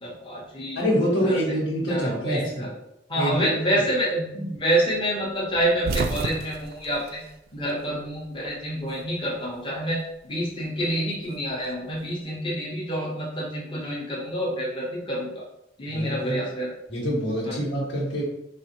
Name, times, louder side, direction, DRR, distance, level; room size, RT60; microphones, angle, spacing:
voice 1, 0.0-0.8 1.2-1.6 1.9-2.7 3.1-7.2 7.5-15.4 15.8-16.7 17.4-17.7, right 1 dB, 30° left, -5 dB, 0.8 m, -27 dB
voice 2, 0.7-2.7 3.1-3.5 15.9-16.4 16.9-18.2, equal, 90° left, -5 dB, 1.4 m, -25 dB
sound 1, 5.5-8.1 8.4-9.4 10.6-12.1, right 3 dB, 60° right, 0.3 m, -32 dB
4.1 x 2.4 x 2.8 m, 0.83 s
head